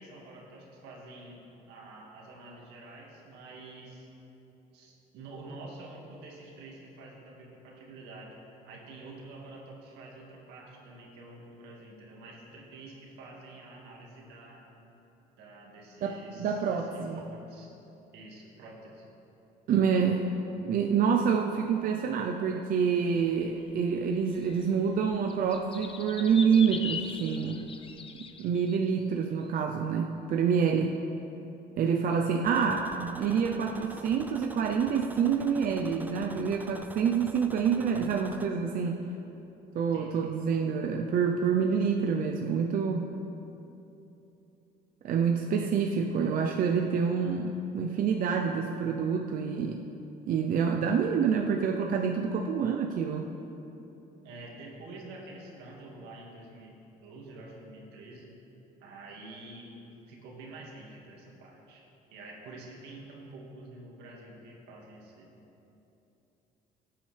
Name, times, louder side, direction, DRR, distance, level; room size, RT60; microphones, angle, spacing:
voice 1, 0.0-4.1 4.7-8.4 8.7-14.7 15.4-17.7 18.1-19.0 39.9-40.3 45.5-45.7 54.2-56.7 57.0-58.4 58.8-59.8 60.1-65.4, right 2 dB, 90° right, -2 dB, 2.1 m, -48 dB
voice 2, 16.0-17.2 19.7-20.3 20.6-27.7 28.4-30.9 31.8-39.0 39.7-43.1 45.0-49.8 50.3-53.3, right 6 dB, 55° right, 2 dB, 0.6 m, -27 dB
sound 1, 23.3-28.9, left 5 dB, 30° left, 0.7 m, -41 dB
sound 2, 32.5-38.5, right 2 dB, 10° right, 0.5 m, -46 dB
16.0 x 8.6 x 3.4 m, 3.0 s
cardioid pair, 110°, 17 cm